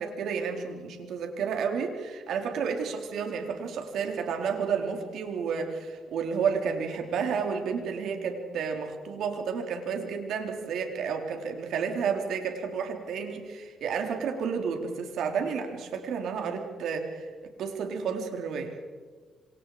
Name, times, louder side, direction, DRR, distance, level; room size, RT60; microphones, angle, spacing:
voice 1, 0.0-17.3 17.6-18.7, right 6 dB, 75° right, 3 dB, 4.1 m, -31 dB
27.0 x 26.5 x 5.1 m, 1.5 s
cardioid pair, 90°, 0 cm